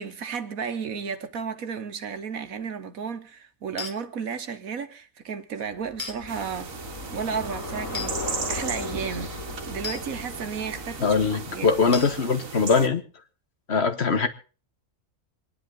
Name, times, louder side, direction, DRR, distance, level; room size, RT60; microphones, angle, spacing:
voice 1, 0.0-6.7 7.1-9.4 9.7-11.2 11.5-11.9, right 6 dB, 90° right, 1.7 m, -33 dB
sound 1, 3.8-4.0 6.0-6.2 7.9-8.1 9.8-10.0 11.9-12.2, left 5 dB, 35° left, 1.6 m, -33 dB
Bicycle, 5.8-12.3, left 2 dB, 75° left, 5.9 m, -37 dB
sound 2, 6.3-12.9, right 5 dB, 75° right, 1.8 m, -37 dB
voice 2, 11.0-13.0 13.7-14.3, left 5 dB, 50° left, 1.5 m, -22 dB
26.5 x 10.5 x 3.9 m
omnidirectional pair, 1.4 m